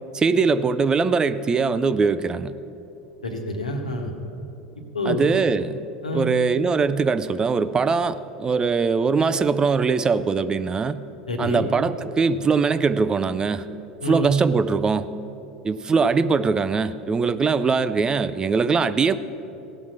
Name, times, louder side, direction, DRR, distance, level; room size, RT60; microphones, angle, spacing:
voice 1, 0.1-2.5 5.1-5.8 6.1-11.0 11.4-13.7 14.0-15.1 15.6-19.2, right 5 dB, 20° right, 14 dB, 0.4 m, -21 dB
voice 2, 3.2-4.1 4.8-5.3 6.0-6.3 11.3-11.6 14.0-14.3, left 1 dB, 80° left, 2 dB, 1.4 m, -27 dB
17.5 x 6.1 x 7.3 m, 2.9 s
figure-of-eight pair, 80°, 4 cm